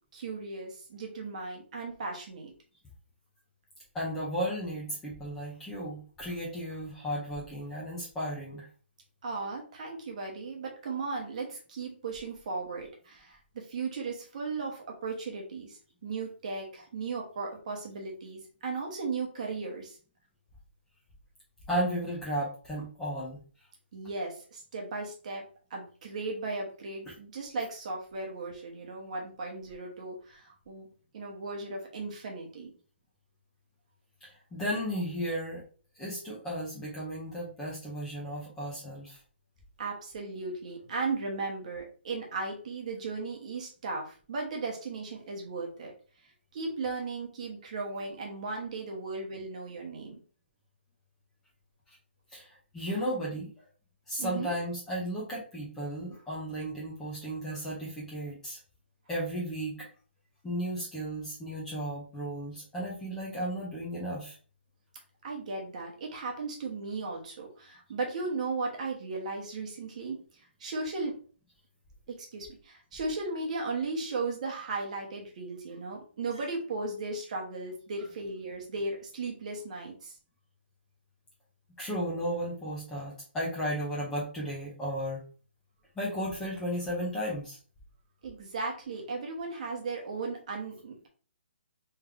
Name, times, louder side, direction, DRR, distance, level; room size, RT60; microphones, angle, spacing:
voice 1, 0.1-2.5 9.2-20.0 23.9-25.4 25.7-30.9 31.1-32.7 39.8-45.9 46.5-50.2 54.2-54.5 65.2-70.2 70.6-71.1 72.2-80.1 88.2-91.1, right 3 dB, 35° right, 0 dB, 1.2 m, -36 dB
voice 2, 3.9-8.7 21.7-23.4 34.2-35.6 36.0-39.2 52.3-52.5 52.7-53.5 54.1-58.6 59.1-59.9 60.4-64.4 81.8-85.2 86.0-87.6, equal, 5° left, -7 dB, 0.8 m, -34 dB
3.3 x 3.1 x 3.7 m, 0.39 s
hypercardioid pair, 170°, 6 cm